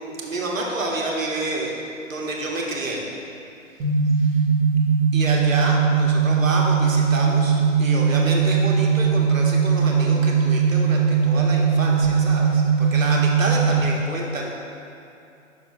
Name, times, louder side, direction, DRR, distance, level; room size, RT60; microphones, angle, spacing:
voice 1, 0.0-1.8 2.1-3.0 4.1-4.4 5.1-14.5, right 2 dB, 75° right, -1 dB, 1.3 m, -29 dB
sound 1, 3.8-13.8, right 6 dB, 15° right, 0.7 m, -19 dB
6.1 x 4.9 x 4.0 m, 2.7 s
figure-of-eight pair, 135°, 40 cm